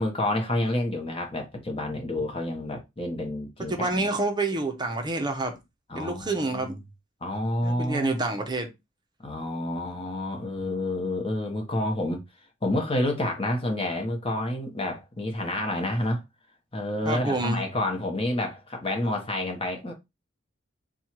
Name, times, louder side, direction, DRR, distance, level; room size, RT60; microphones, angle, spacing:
voice 1, 0.0-4.1 5.9-6.8 7.2-8.2 9.2-12.2 12.6-16.2 16.7-19.9, left 1 dB, 25° left, 0.9 m, -29 dB
voice 2, 3.7-5.5 5.9-6.7 7.6-8.7 17.1-17.6, right 2 dB, 20° right, 0.7 m, -28 dB
4.4 x 2.3 x 4.5 m
head